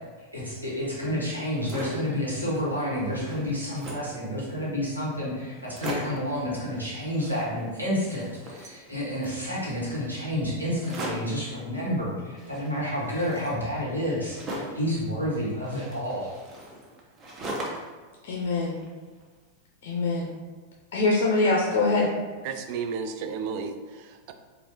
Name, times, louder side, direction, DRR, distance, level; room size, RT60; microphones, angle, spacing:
voice 1, 0.3-16.3, equal, 85° right, -7 dB, 1.4 m, -30 dB
sound 1, 1.5-2.1 2.6-2.7 2.9-4.2 4.8-4.9 5.1-5.2 5.5-6.3 7.0-9.4 10.8-11.4 12.4-14.9 15.6-18.0 18.3-19.2, right 1 dB, 25° right, 0.8 m, -39 dB
voice 2, 18.2-18.8 19.8-20.3 20.9-22.1, left 3 dB, 55° left, -1 dB, 0.6 m, -23 dB
voice 3, 22.4-24.3, right 5 dB, 45° right, 7 dB, 0.4 m, -33 dB
4.5 x 2.6 x 2.8 m, 1.4 s
figure-of-eight pair, 90°, 0 cm